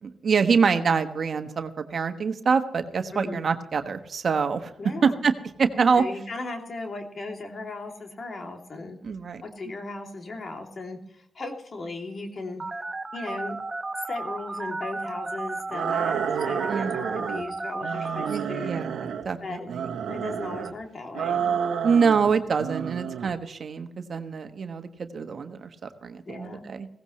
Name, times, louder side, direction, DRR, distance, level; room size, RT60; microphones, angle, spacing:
voice 1, 0.0-4.7 5.0-5.3 5.6-6.0 9.0-9.4 16.7-17.1 18.3-19.9 21.8-26.9, right 5 dB, 60° right, 7 dB, 1.3 m, -25 dB
voice 2, 3.1-3.4 4.8-5.1 5.9-9.0 9.4-12.8 13.1-13.6 14.1-18.7 19.4-19.7 20.1-21.5 26.3-26.6, left 3 dB, 50° left, 2 dB, 2.8 m, -37 dB
Telephone, 12.6-18.4, right 2 dB, 30° right, 1.3 m, -34 dB
sound 1, 15.7-17.5 17.8-19.3 19.7-20.7 21.1-22.3 22.6-23.3, right 8 dB, 90° right, 1.0 m, -30 dB
17.0 x 16.0 x 3.2 m, 0.73 s
cardioid pair, 60°, 0 cm